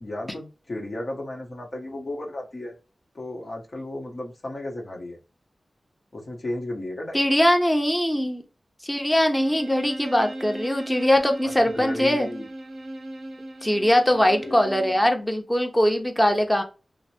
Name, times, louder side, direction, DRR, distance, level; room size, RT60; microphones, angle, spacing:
voice 1, 0.0-2.7 3.1-5.2 6.1-7.2 11.6-12.5 14.1-14.7, left 1 dB, 55° left, -1 dB, 1.1 m, -34 dB
voice 2, 7.1-8.4 8.8-12.3 13.6-16.6, equal, 10° left, 4 dB, 0.8 m, -21 dB
Bowed string instrument, 9.3-15.1, right 1 dB, 75° right, 0.5 m, -38 dB
2.9 x 2.1 x 2.9 m, 0.32 s
cardioid pair, 45°, 0 cm